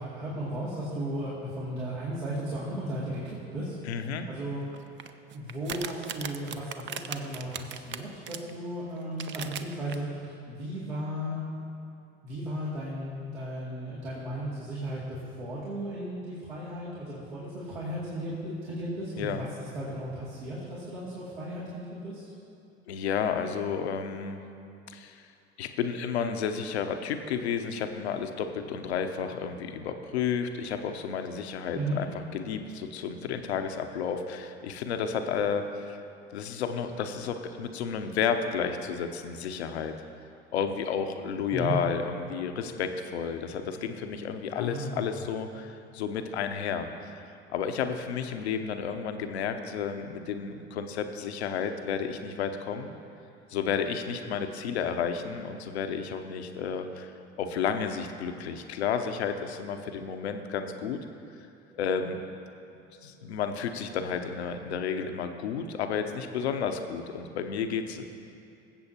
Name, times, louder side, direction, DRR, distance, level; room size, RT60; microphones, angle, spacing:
voice 1, 0.0-3.7 4.3-4.6 5.3-11.4 12.2-22.2 31.8-32.0 41.5-41.8 44.6-45.1, right 1 dB, 75° right, -9 dB, 2.5 m, -35 dB
voice 2, 3.9-4.3 19.2-19.4 22.9-24.4 24.9-25.2 25.6-36.0 36.3-39.9 40.5-47.2 47.5-52.9 53.5-57.1 57.4-61.0 61.7-62.2 63.0-68.0, left 6 dB, 75° left, 7 dB, 0.8 m, -32 dB
sound 1, 4.7-8.5 9.0-9.9, right 8 dB, 35° right, 0.6 m, -37 dB
21.0 x 7.8 x 2.9 m, 2.6 s
figure-of-eight pair, 70°, 33 cm